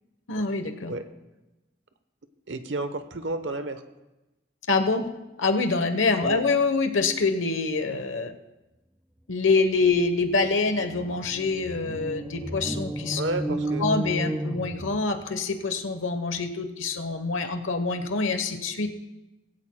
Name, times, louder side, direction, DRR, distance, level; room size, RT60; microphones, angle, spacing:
voice 1, 0.3-0.9 4.7-5.1 5.4-8.3 9.3-13.2 13.5-19.0, left 3 dB, 85° left, 8 dB, 1.1 m, -25 dB
voice 2, 2.5-3.8 6.2-6.4 13.1-13.9, right 2 dB, 70° right, 9 dB, 1.0 m, -31 dB
sound 1, 10.0-10.1 10.3-15.3, right 1 dB, 10° right, 0.4 m, -33 dB
20.5 x 16.0 x 2.3 m, 1.0 s
head